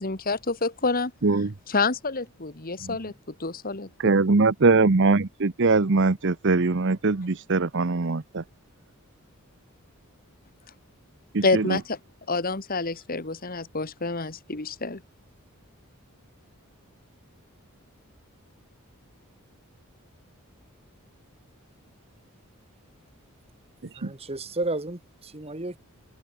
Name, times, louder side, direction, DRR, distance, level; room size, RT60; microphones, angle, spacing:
voice 1, 0.0-1.1 1.7-3.1 3.4-3.9 11.4-12.0 12.3-15.0, left 3 dB, 40° left, 1.8 m, -27 dB
voice 2, 1.2-1.5 2.8-2.9 4.0-8.4 11.3-11.8 24.0-24.1, right 3 dB, 55° right, 0.8 m, -22 dB
voice 3, 24.0-25.8, right 2 dB, 30° right, 1.8 m, -32 dB
head